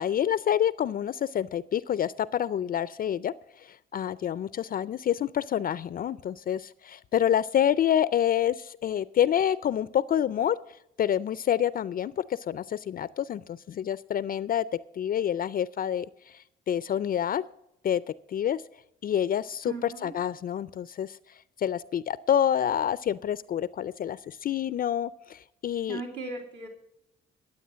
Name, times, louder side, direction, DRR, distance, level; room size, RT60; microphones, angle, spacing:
voice 1, 0.0-10.6 11.0-14.7 15.0-17.4 17.8-18.0 18.3-18.6 19.0-21.2 21.6-26.0, left 10 dB, 45° left, 18 dB, 0.4 m, -27 dB
voice 2, 19.7-20.1 25.9-26.7, right 3 dB, 65° right, -1 dB, 2.6 m, -37 dB
12.0 x 8.0 x 7.3 m, 0.78 s
cardioid pair, 90°, 20 cm